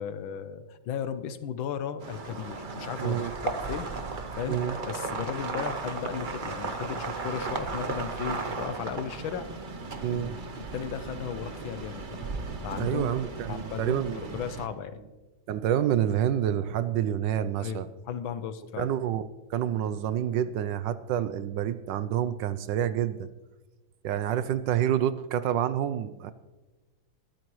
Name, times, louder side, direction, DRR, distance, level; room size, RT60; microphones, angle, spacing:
voice 1, 0.0-3.9 4.4-9.5 10.1-10.4 10.7-12.2 12.6-13.1 13.5-15.0 17.6-19.0, left 8 dB, 80° left, 11 dB, 1.6 m, -35 dB
sound 1, 2.0-14.7, right 4 dB, 40° right, 0.7 m, -35 dB
voice 2, 3.0-3.3 4.5-4.8 10.0-10.3 12.8-14.4 15.5-17.9 18.8-19.2 19.5-23.3 24.0-26.3, right 10 dB, 75° right, 13 dB, 1.2 m, -28 dB
21.0 x 13.5 x 3.1 m, 1.2 s
omnidirectional pair, 2.2 m